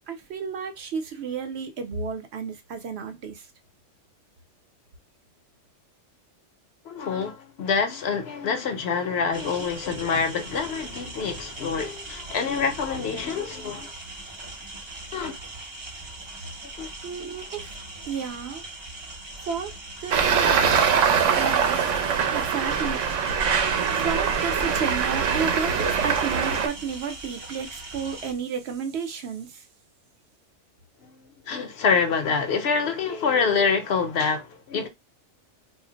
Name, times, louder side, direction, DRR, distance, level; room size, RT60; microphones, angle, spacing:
voice 1, 0.0-3.5 17.0-17.8 18.1-18.6 19.5-19.7 20.0-20.6 21.3-23.1 23.6-29.7, right 6 dB, 65° right, 0.8 m, -32 dB
voice 2, 6.9-13.9 15.1-15.3 16.8-16.9 31.0-31.1 31.5-34.9, left 5 dB, 65° left, 0.8 m, -26 dB
sound 1, 9.3-28.3, right 2 dB, 30° right, 0.6 m, -40 dB
Traffic noise roadway noise, 20.1-26.7, right 6 dB, 90° right, 1.0 m, -23 dB
2.5 x 2.0 x 3.8 m
omnidirectional pair, 1.2 m